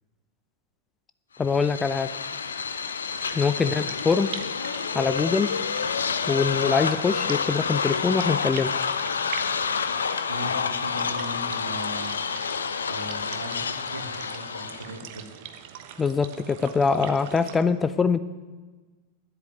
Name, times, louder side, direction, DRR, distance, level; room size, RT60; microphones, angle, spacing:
sound 1, 1.4-15.0, left 6 dB, 70° left, 0.6 m, -29 dB
voice 1, 1.4-2.1 3.3-4.3 4.9-5.5 6.3-8.7 16.0-18.2, left 5 dB, 15° left, 13 dB, 0.5 m, -23 dB
sound 2, 3.1-17.6, right 9 dB, 50° right, 1.0 m, -43 dB
voice 2, 10.3-12.3 12.9-15.3, right 1 dB, 75° right, 4 dB, 1.7 m, -38 dB
10.0 x 8.2 x 9.3 m, 1.3 s
figure-of-eight pair, 90°, 0 cm